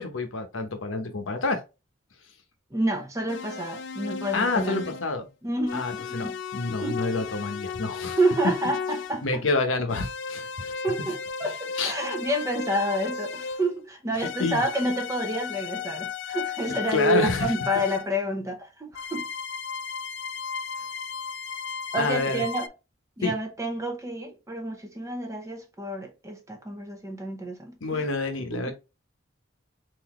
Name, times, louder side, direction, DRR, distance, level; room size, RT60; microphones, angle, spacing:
voice 1, 0.0-1.6 4.3-5.2 5.7-8.2 9.2-10.8 11.0-11.1 11.8-11.9 14.2-14.6 16.9-17.5 22.0-22.5 23.2-23.3 27.8-28.7, left 3 dB, 85° left, 0.9 m, -28 dB
voice 2, 2.7-4.9 5.4-6.3 6.8-7.0 8.2-9.4 10.8-19.3 21.9-22.7 23.2-28.1 28.5-28.7, right 1 dB, 15° right, 0.7 m, -29 dB
sound 1, 3.3-5.1 5.7-9.2 9.9-13.8 14.2-18.1 18.9-22.7, left 6 dB, 70° left, 0.3 m, -35 dB
3.9 x 2.7 x 3.0 m
head